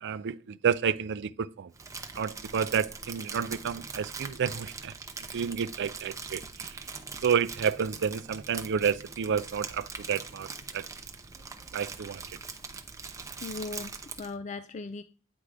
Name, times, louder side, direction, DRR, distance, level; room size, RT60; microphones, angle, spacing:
voice 1, 0.0-1.7 2.1-4.9 5.3-6.8 7.2-10.9 11.7-12.2, right 7 dB, 50° right, 0.4 m, -30 dB
Crumpling crinkling, 1.7-14.3, right 4 dB, 15° right, 0.6 m, -42 dB
voice 2, 13.4-15.0, left 3 dB, 30° left, 0.3 m, -38 dB
9.2 x 3.5 x 4.9 m
head